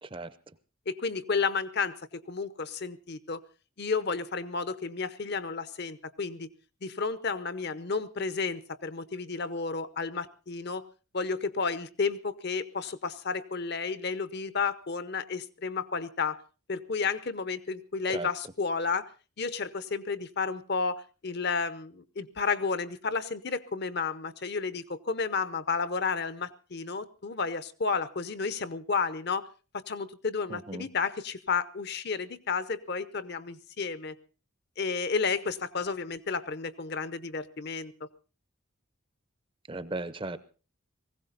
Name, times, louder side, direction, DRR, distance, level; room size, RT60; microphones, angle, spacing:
voice 1, 0.9-3.4 3.8-6.5 6.8-10.8 11.1-16.4 16.7-19.1 19.4-29.5 29.7-34.2 34.8-37.9, left 5 dB, 50° left, 14 dB, 0.8 m, -32 dB
voice 2, 30.5-30.9 39.7-40.4, right 2 dB, 25° right, 14 dB, 0.7 m, -36 dB
19.5 x 16.0 x 4.0 m, 0.35 s
head